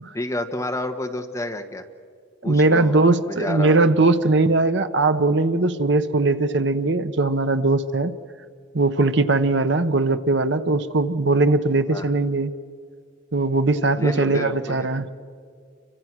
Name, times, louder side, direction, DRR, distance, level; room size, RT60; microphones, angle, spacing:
voice 1, 0.1-1.8 2.4-3.0 3.3-3.8 11.9-12.1 14.0-14.8, left 1 dB, 15° left, 4 dB, 1.5 m, -29 dB
voice 2, 2.4-8.1 8.7-12.5 13.3-15.1, right 2 dB, 60° right, 11 dB, 0.9 m, -20 dB
29.5 x 25.0 x 6.2 m, 2.1 s
head